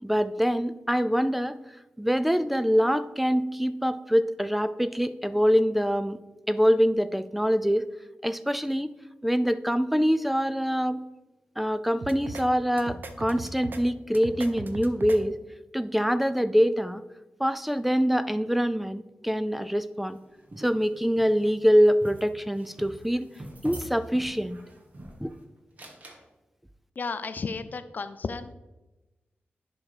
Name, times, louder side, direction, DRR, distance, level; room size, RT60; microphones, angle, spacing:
voice 1, 0.0-1.6 2.0-6.2 6.5-7.9 8.2-8.9 9.2-11.0 11.6-15.4 15.7-17.0 17.4-20.2 20.6-23.3 23.6-24.6 25.2-25.3, equal, 5° right, 13 dB, 0.4 m, -24 dB
sound 1, 12.0-12.4 12.8-13.8 14.1-15.2, right 3 dB, 55° right, 0.8 m, -38 dB
sound 2, 20.0-25.4 25.8-26.2, right 1 dB, 40° right, 1.5 m, -45 dB
voice 2, 27.0-28.6, left 4 dB, 50° left, 11 dB, 0.5 m, -33 dB
10.5 x 3.6 x 5.0 m, 1.0 s
wide cardioid pair, 105°, 4 cm